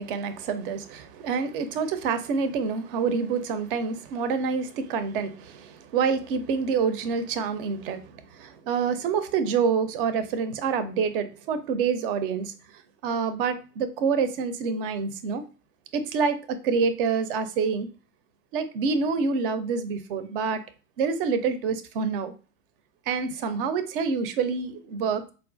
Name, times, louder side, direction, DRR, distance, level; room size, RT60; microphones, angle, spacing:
voice 1, 0.0-15.4 15.9-17.9 18.5-20.6 21.0-22.3 23.1-25.3, right 5 dB, 40° right, 0.4 m, -27 dB
4.3 x 2.3 x 2.5 m
hypercardioid pair, 105°, 49 cm